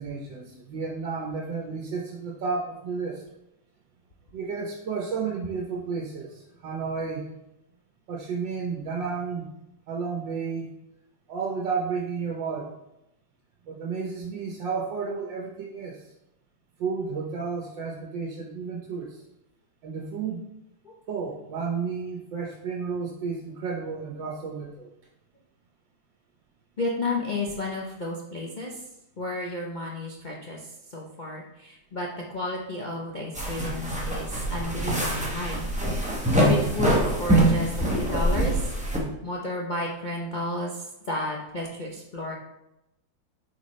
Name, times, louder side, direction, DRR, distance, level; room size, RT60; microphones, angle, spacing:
voice 1, 0.0-3.2 4.3-7.3 8.1-9.5 9.9-10.7 11.3-12.7 13.7-16.0 16.8-19.2 19.8-20.4 21.1-24.9, right 5 dB, 80° right, -1 dB, 1.6 m, -32 dB
voice 2, 26.8-28.8 29.2-35.7 36.3-38.7 39.2-42.3, left 2 dB, 65° left, -2 dB, 0.4 m, -32 dB
sound 1, 33.3-39.0, right 1 dB, 5° right, 0.9 m, -24 dB
8.1 x 4.8 x 3.2 m, 0.87 s
omnidirectional pair, 2.0 m